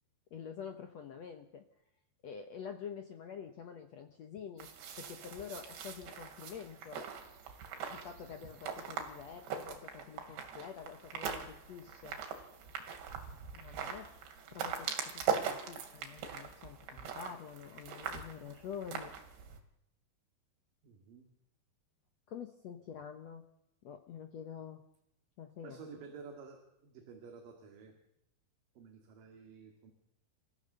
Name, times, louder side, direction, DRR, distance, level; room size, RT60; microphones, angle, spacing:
voice 1, 0.3-1.6 2.2-4.7 4.9-7.0 7.9-12.2 13.5-14.1 14.5-19.2 22.3-23.4 23.8-24.8 25.4-25.8, left 7 dB, 85° left, 6 dB, 1.5 m, -47 dB
sound 1, 4.6-19.6, right 7 dB, 90° right, 4.7 m, -41 dB
voice 2, 20.8-21.3 25.6-27.9 28.8-29.9, right 5 dB, 55° right, 3 dB, 3.6 m, -51 dB
30.0 x 15.0 x 6.8 m, 0.81 s
omnidirectional pair, 4.9 m